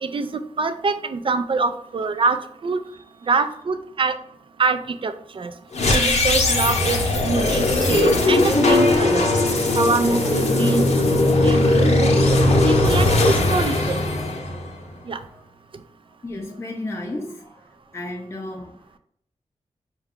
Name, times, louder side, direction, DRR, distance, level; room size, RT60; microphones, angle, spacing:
voice 1, 0.0-2.8 3.3-4.2 4.6-5.5 5.9-9.3 9.8-11.1 11.4-14.0 15.1-15.2, right 4 dB, 45° right, 0.5 m, -24 dB
sound 1, 5.7-15.0, left 2 dB, 70° left, 0.8 m, -19 dB
voice 2, 16.2-17.6 17.9-19.0, left 2 dB, 20° left, 0.5 m, -33 dB
4.5 x 2.3 x 3.5 m
cardioid pair, 50°, 12 cm